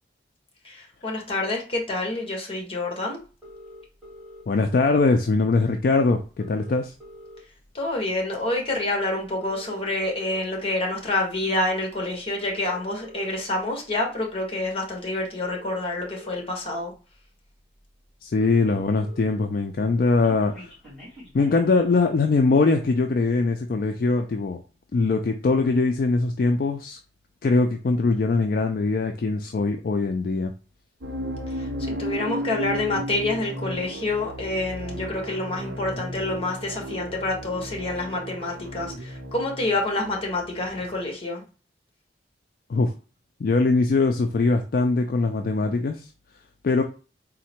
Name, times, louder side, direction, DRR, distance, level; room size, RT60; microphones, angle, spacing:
voice 1, 0.6-3.2 7.7-16.9 31.5-41.4, left 2 dB, 35° left, 1 dB, 1.2 m, -28 dB
sound 1, 3.4-4.4 5.6-5.7 6.0-6.1 6.2-7.7 8.2-8.4 9.2-10.4 11.1-11.3 12.3-13.4 14.6-14.7 15.2-16.4 17.1-17.2 17.5-17.6 17.8-17.9 18.1-19.4 19.7-21.9, equal, ahead, 1.8 m, -45 dB
voice 2, 4.5-6.9 18.2-20.7 21.3-24.6 24.9-27.0 27.4-30.5 42.7-42.9 43.4-46.1 46.6-46.8, left 3 dB, 55° left, 5 dB, 0.4 m, -22 dB
sound 2, 31.0-41.0, equal, 70° right, 0.7 m, -34 dB
3.8 x 2.1 x 4.3 m, 0.34 s
head